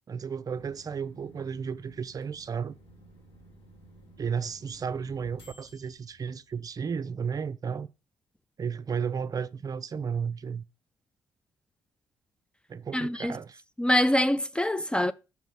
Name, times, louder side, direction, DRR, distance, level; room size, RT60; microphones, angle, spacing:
voice 1, 0.0-2.7 4.2-7.9 8.6-10.6 12.7-13.6, right 6 dB, 45° right, 0.5 m, -33 dB
sound 1, 0.5-7.0, right 1 dB, 70° left, 2.3 m, -54 dB
voice 2, 12.9-13.4 13.8-15.1, left 1 dB, 10° left, 0.3 m, -24 dB
5.8 x 3.0 x 5.6 m
supercardioid pair, 55°, 9 cm